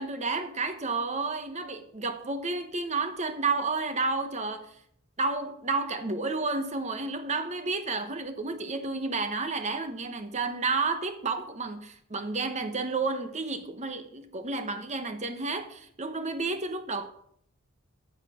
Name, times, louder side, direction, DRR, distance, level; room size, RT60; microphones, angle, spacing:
voice 1, 0.0-4.7 5.2-17.1, right 3 dB, 30° right, 0.9 m, -31 dB
14.0 x 5.0 x 4.9 m
head